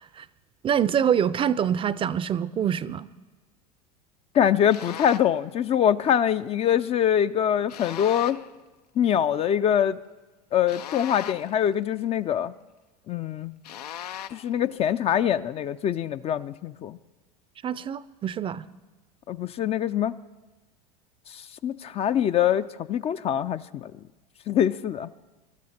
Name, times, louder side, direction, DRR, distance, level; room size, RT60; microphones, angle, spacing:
voice 1, 0.6-3.1 17.6-18.7, right 8 dB, 25° right, 0.5 m, -25 dB
voice 2, 4.3-8.4 9.0-10.0 10.5-12.5 13.1-13.5 14.3-17.0 19.3-20.2 21.3-23.9 24.5-25.1, left 9 dB, 30° left, 0.4 m, -24 dB
sound 1, 4.7-5.4 7.7-8.5 10.7-11.6 13.6-14.5, left 10 dB, 85° left, 0.6 m, -38 dB
23.0 x 12.5 x 4.3 m
hypercardioid pair, 95°, 20 cm